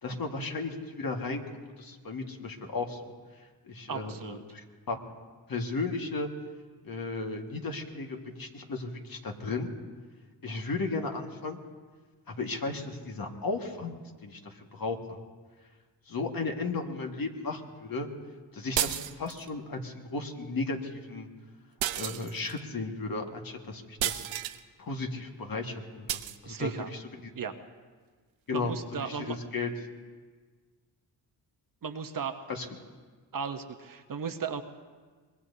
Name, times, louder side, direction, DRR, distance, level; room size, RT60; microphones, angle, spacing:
voice 1, 0.0-1.4 1.8-3.0 3.7-5.0 5.5-6.3 6.8-9.7 10.4-11.6 12.4-13.9 14.2-15.0 16.1-18.1 18.5-21.3 22.0-24.2 24.8-27.0 28.5-28.7 29.0-29.7 32.5-32.6, left 3 dB, 50° left, 2 dB, 1.8 m, -35 dB
voice 2, 3.9-4.4 26.4-26.9 27.3-27.5 28.5-29.4 31.8-32.3 33.3-34.6, right 6 dB, 45° right, 7 dB, 1.0 m, -35 dB
sound 1, 18.8-19.5 21.8-22.6 24.0-24.6 26.1-26.4, right 12 dB, 85° right, 0.7 m, -32 dB
25.0 x 21.0 x 2.8 m, 1.5 s
cardioid pair, 75°, 45 cm